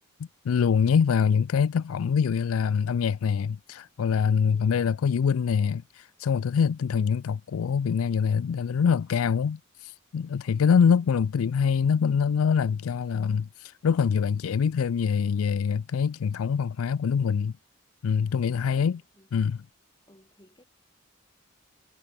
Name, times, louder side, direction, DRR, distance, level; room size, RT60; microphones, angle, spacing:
voice 1, 0.4-17.5 18.0-19.0 19.3-19.6, left 6 dB, 90° left, 0.4 m, -24 dB
voice 2, 4.5-4.9 18.8-19.3 20.1-20.6, equal, 20° left, 6.6 m, -57 dB
head